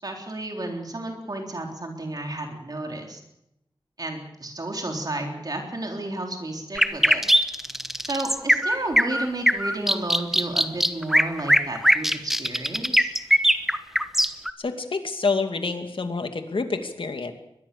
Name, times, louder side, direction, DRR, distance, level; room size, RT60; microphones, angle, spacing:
voice 1, 0.0-3.2 4.0-7.2 8.0-13.1, right 2 dB, 45° right, 2 dB, 3.8 m, -32 dB
sound 1, 6.7-14.5, equal, 5° right, 1.2 m, -20 dB
voice 2, 14.6-17.3, left 4 dB, 70° left, 6 dB, 2.4 m, -27 dB
23.0 x 20.5 x 7.0 m, 0.85 s
wide cardioid pair, 95°, 9 cm